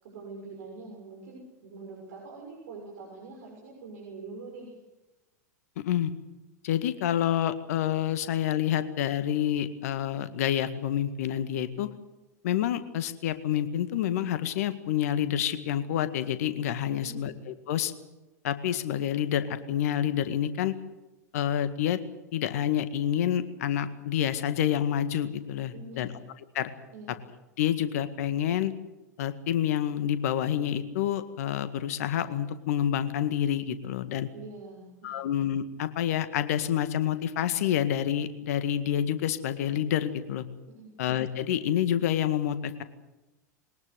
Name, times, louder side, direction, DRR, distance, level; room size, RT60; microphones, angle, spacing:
voice 1, 0.0-4.7 16.9-17.3 25.7-26.1 26.9-27.1 34.3-35.2 40.7-40.9, right 3 dB, 60° right, -1 dB, 6.5 m, -44 dB
voice 2, 5.8-6.1 6.6-11.9 12.4-17.9 18.4-20.7 21.3-22.0 22.3-26.1 26.5-26.7 27.6-28.7 29.2-34.3 35.0-40.5 41.0-42.8, left 10 dB, 60° left, 12 dB, 1.9 m, -28 dB
22.0 x 19.0 x 8.1 m, 1.0 s
figure-of-eight pair, 90°, 9 cm